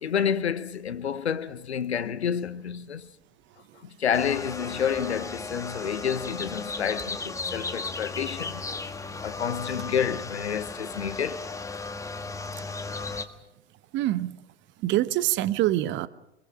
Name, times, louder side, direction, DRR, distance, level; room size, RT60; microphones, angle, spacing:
voice 1, 0.0-3.1 3.8-8.9 9.2-11.4, left 8 dB, 75° left, 1.2 m, -29 dB
sound 1, 4.1-13.3, left 3 dB, 10° left, 1.7 m, -35 dB
voice 2, 13.9-14.3 14.8-16.1, right 14 dB, 35° right, 1.1 m, -25 dB
26.0 x 22.5 x 6.2 m
figure-of-eight pair, 90°, 33 cm